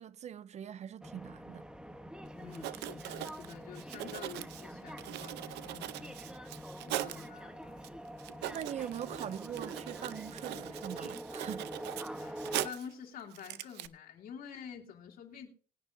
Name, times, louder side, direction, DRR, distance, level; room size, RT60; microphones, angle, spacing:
voice 1, 0.0-1.6 8.5-11.7, right 9 dB, 40° right, 0.4 m, -42 dB
sound 1, 1.0-12.7, right 1 dB, 5° right, 0.9 m, -45 dB
Writing, 2.2-2.3 2.5-7.3 7.8-7.9 8.2-12.9 13.3-13.9, right 14 dB, 80° right, 0.6 m, -41 dB
voice 2, 2.3-6.2 6.8-7.9 12.2-15.5, left 7 dB, 60° left, 2.7 m, -48 dB
20.0 x 9.7 x 2.6 m
cardioid pair, 110°, 17 cm